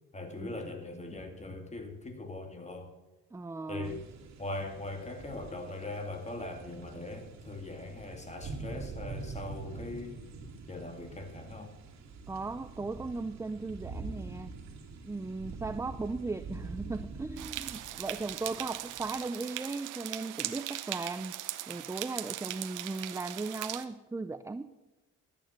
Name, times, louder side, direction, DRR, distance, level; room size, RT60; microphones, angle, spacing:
voice 1, 0.1-2.9 3.7-4.0 4.4-10.2 10.7-11.7, left 2 dB, 20° left, 4 dB, 2.5 m, -40 dB
voice 2, 3.3-4.0 12.3-14.5 15.0-21.3 21.7-24.7, right 3 dB, 10° right, 12 dB, 0.5 m, -37 dB
sound 1, 3.8-19.1, right 4 dB, 60° right, 2.5 m, -45 dB
sound 2, 17.4-23.8, right 14 dB, 90° right, 0.8 m, -39 dB
13.0 x 9.3 x 5.8 m, 1.1 s
cardioid pair, 90°, 30 cm